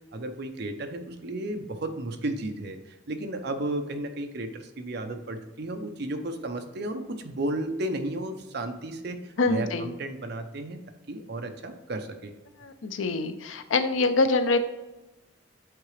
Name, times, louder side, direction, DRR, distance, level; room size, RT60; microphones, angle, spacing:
voice 1, 0.1-10.8 11.1-12.3, right 1 dB, 55° right, 6 dB, 0.7 m, -33 dB
voice 2, 9.4-9.9 12.6-14.6, left 3 dB, 90° left, 10 dB, 0.6 m, -25 dB
8.0 x 3.7 x 3.3 m, 1.1 s
head